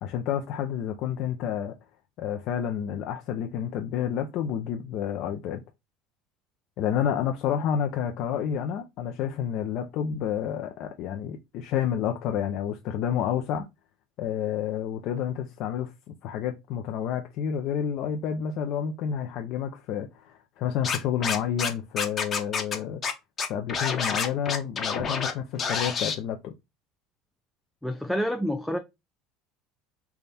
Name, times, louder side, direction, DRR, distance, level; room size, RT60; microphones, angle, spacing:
voice 1, 0.0-1.7 2.2-5.6 6.8-13.7 14.2-23.0 23.5-26.5, left 9 dB, 60° left, 0.5 m, -29 dB
Scratching (performance technique), 20.8-21.7 22.0-22.7 23.0-23.1 23.4-25.3 25.6-26.1, left 6 dB, 35° left, 0.9 m, -28 dB
voice 2, 27.8-28.8, equal, ahead, 0.4 m, -28 dB
3.4 x 2.3 x 4.1 m
supercardioid pair, 110°, 0 cm